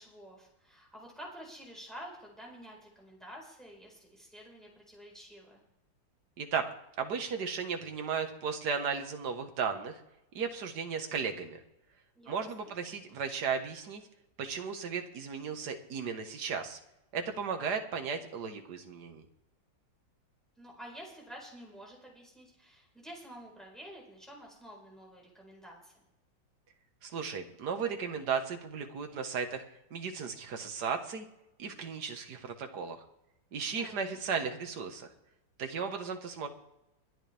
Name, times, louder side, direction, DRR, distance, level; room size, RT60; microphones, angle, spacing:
voice 1, 0.0-5.6 12.2-12.7 20.6-26.0 33.7-33.9, equal, ahead, -2 dB, 4.5 m, -49 dB
voice 2, 7.0-10.0 10.3-11.6 12.3-14.0 14.4-16.8 17.1-19.2 27.0-29.6 29.9-31.3 31.6-33.0 33.5-35.1 35.6-36.5, right 6 dB, 60° right, 5 dB, 1.9 m, -35 dB
21.5 x 11.0 x 3.4 m, 0.89 s
omnidirectional pair, 2.0 m